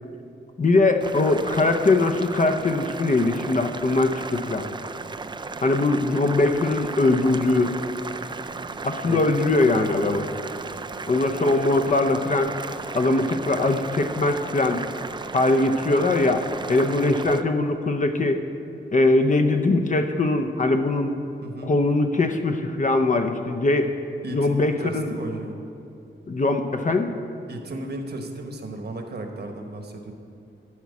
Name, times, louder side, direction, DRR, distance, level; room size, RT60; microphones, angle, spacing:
voice 1, 0.6-4.7 5.6-7.7 8.8-10.3 11.1-12.5 12.9-14.8 15.3-16.4 16.7-18.4 18.9-21.1 21.6-23.9 24.3-25.1 26.3-27.1, left 2 dB, 40° left, 6 dB, 0.7 m, -21 dB
Boiling, 1.0-17.4, right 4 dB, 20° right, 0.3 m, -35 dB
voice 2, 21.4-21.7 24.2-25.6 27.5-30.1, right 2 dB, 55° right, 4 dB, 1.2 m, -34 dB
11.5 x 4.8 x 8.3 m, 2.6 s
wide cardioid pair, 115°, 21 cm